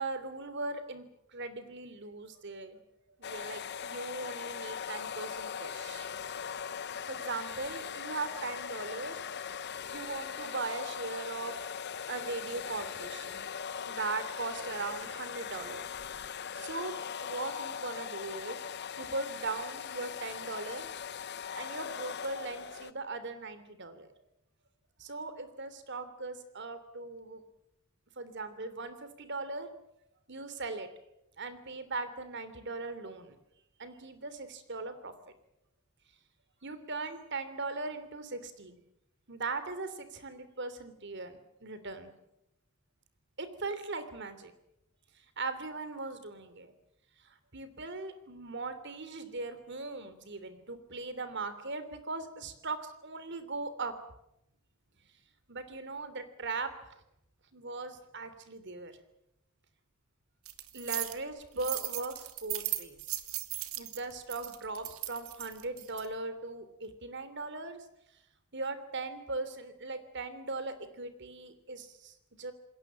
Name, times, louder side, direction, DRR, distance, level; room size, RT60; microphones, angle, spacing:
voice 1, 0.0-2.8 3.2-6.1 7.1-9.2 9.6-11.5 12.1-13.6 13.9-16.9 17.2-18.6 19.0-20.9 21.5-24.2 25.0-27.4 28.2-29.7 30.3-30.9 31.4-33.4 33.8-35.1 36.6-38.8 39.3-42.1 43.4-44.5 45.1-46.7 47.2-53.9 55.5-57.0 57.5-58.9 60.7-63.0 63.8-67.8 68.5-72.5, right 3 dB, 55° right, 11 dB, 3.1 m, -39 dB
sound 1, 3.2-22.9, left 7 dB, 50° left, 0.9 m, -40 dB
sound 2, 60.5-61.1 61.6-66.1, right 15 dB, 90° right, 2.1 m, -37 dB
27.5 x 21.5 x 7.5 m, 0.82 s
head